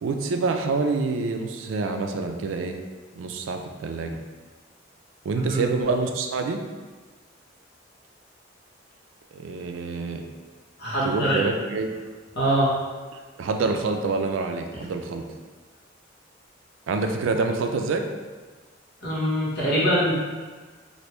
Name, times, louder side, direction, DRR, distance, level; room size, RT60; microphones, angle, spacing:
voice 1, 0.0-2.8 3.2-4.2 5.2-6.6 9.3-10.2 11.0-11.9 13.4-15.2 16.9-18.0, right 4 dB, 80° right, 5 dB, 0.3 m, -26 dB
voice 2, 10.8-11.4 12.3-12.7 19.0-20.1, equal, 55° left, -7 dB, 1.1 m, -23 dB
3.1 x 2.6 x 3.0 m, 1.4 s
head